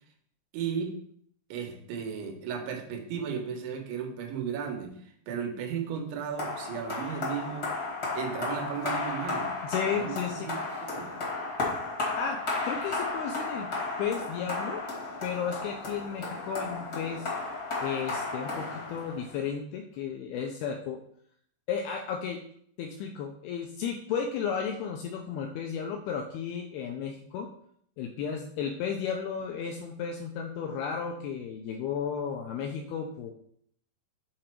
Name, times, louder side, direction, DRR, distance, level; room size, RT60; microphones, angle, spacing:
voice 1, 0.5-0.9 1.5-7.7 8.1-9.5 9.9-11.1, right 7 dB, 80° right, 3 dB, 3.2 m, -35 dB
sound 1, 6.4-19.4, left 3 dB, 55° left, 1.0 m, -34 dB
voice 2, 9.6-10.5 12.2-12.4 12.7-13.7 14.0-14.8 15.2-17.3 17.8-21.0 21.7-22.4 22.8-27.5 28.0-33.3, left 7 dB, 85° left, 2 dB, 2.2 m, -33 dB
7.7 x 3.8 x 4.4 m, 0.65 s
omnidirectional pair, 5.1 m